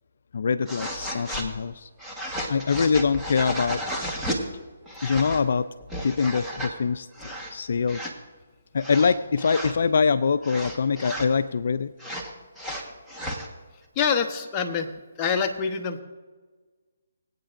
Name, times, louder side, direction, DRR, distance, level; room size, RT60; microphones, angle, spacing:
voice 1, 0.3-1.9 2.5-3.8 5.0-5.7 6.0-7.1 7.5-8.0 8.7-11.9, left 5 dB, 60° left, 12 dB, 0.4 m, -24 dB
sound 1, 0.6-1.5 2.0-4.4 4.9-5.4 5.8-6.7 7.1-7.5 7.9-8.1 8.8-9.7 10.4-11.3 12.0-13.5, equal, 5° right, 1.3 m, -33 dB
voice 2, 14.0-14.9 15.2-16.0, left 6 dB, 20° left, 3 dB, 1.0 m, -25 dB
24.5 x 8.8 x 2.5 m, 1.4 s
hypercardioid pair, 155°, 0 cm